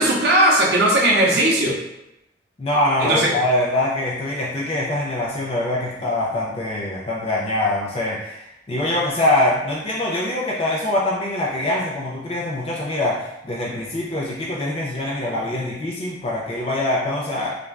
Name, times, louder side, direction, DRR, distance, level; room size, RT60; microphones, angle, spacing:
voice 1, 0.0-1.8 3.0-3.3, right 1 dB, 65° right, -3 dB, 0.7 m, -17 dB
voice 2, 2.6-17.5, left 1 dB, 35° left, -4 dB, 0.4 m, -23 dB
2.4 x 2.1 x 3.2 m, 0.88 s
head